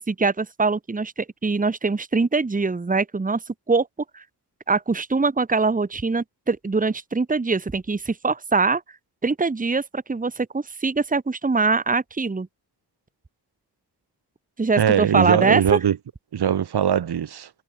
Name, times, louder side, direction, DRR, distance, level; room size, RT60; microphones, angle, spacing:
voice 1, 0.1-3.4 3.7-3.9 4.1-4.2 4.7-8.8 9.2-12.5 14.6-15.8, right 4 dB, 20° right, 1.7 m, -23 dB
voice 2, 14.8-16.0 16.3-17.5, right 9 dB, 70° right, 2.7 m, -21 dB
wide cardioid pair, 150°, 40 cm